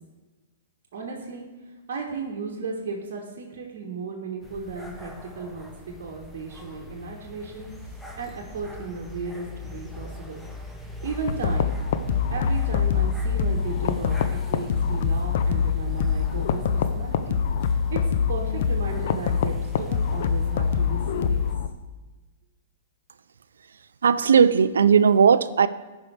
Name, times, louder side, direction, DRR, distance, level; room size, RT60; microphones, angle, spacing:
voice 1, 0.9-1.4 1.9-10.4 11.0-11.7 12.3-14.2 14.5-17.4 17.7-21.5, right 4 dB, 60° right, -2 dB, 1.3 m, -35 dB
sound 1, 4.4-21.6, left 2 dB, 5° left, 1.0 m, -37 dB
sound 2, 11.3-21.7, left 7 dB, 60° left, 0.6 m, -25 dB
voice 2, 24.0-25.7, right 6 dB, 80° right, 15 dB, 0.4 m, -17 dB
15.0 x 5.4 x 3.4 m, 1.2 s
hypercardioid pair, 115°, 0 cm